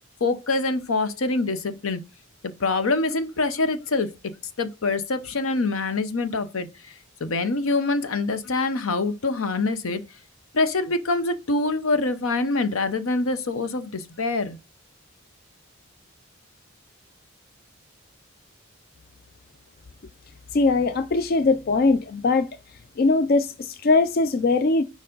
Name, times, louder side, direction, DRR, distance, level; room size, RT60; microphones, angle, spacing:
voice 1, 0.2-2.0 2.6-4.1 4.6-6.9 7.2-10.0 10.5-14.6, left 3 dB, 75° left, 0.7 m, -25 dB
voice 2, 20.5-22.5 23.0-24.8, left 3 dB, 45° left, 0.4 m, -21 dB
6.8 x 4.6 x 3.8 m
head